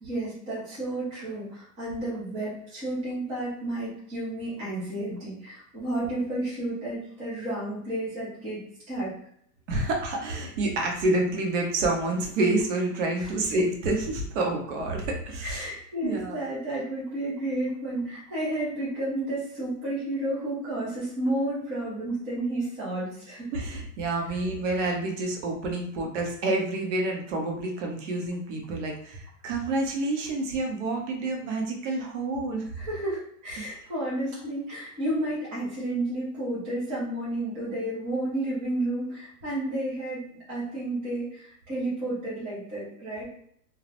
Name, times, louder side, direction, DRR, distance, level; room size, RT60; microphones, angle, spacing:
voice 1, 0.0-9.1 9.7-9.8 13.2-13.3 15.4-23.5 32.7-40.2 40.5-43.2, right 1 dB, 10° right, -10 dB, 0.4 m, -31 dB
voice 2, 9.7-15.7 16.0-16.4 23.5-32.6 33.6-33.7, right 2 dB, 50° right, 1 dB, 0.7 m, -28 dB
2.3 x 2.0 x 2.8 m, 0.67 s
hypercardioid pair, 135°, 49 cm